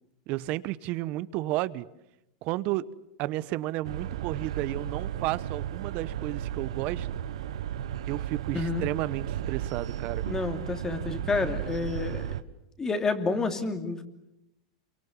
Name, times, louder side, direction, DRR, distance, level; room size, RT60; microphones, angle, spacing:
voice 1, 0.3-1.9 2.4-2.8 3.2-7.2 8.1-10.3, right 17 dB, 50° right, 18 dB, 1.0 m, -32 dB
sound 1, 3.8-12.4, right 10 dB, 80° right, 1.1 m, -34 dB
voice 2, 8.5-8.8 10.2-12.3 12.8-14.0, left 4 dB, 20° left, 7 dB, 2.7 m, -29 dB
28.0 x 24.0 x 7.3 m, 0.85 s
hypercardioid pair, 120°, 3 cm